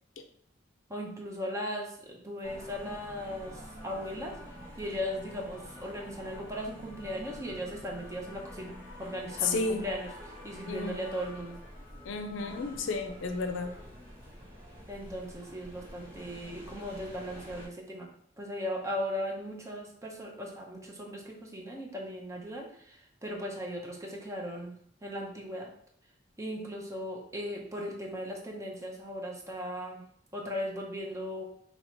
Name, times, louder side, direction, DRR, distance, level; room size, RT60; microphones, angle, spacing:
voice 1, 0.9-8.7 9.0-11.6 14.9-18.1 18.4-25.7 26.4-30.0 30.3-31.4, equal, 15° right, 0 dB, 0.7 m, -38 dB
sound 1, 2.4-17.7, equal, 55° right, 1.5 m, -47 dB
voice 2, 9.4-9.8 10.7-11.0 12.0-13.7, left 3 dB, 75° left, 7 dB, 0.5 m, -32 dB
2.9 x 2.9 x 4.4 m, 0.65 s
head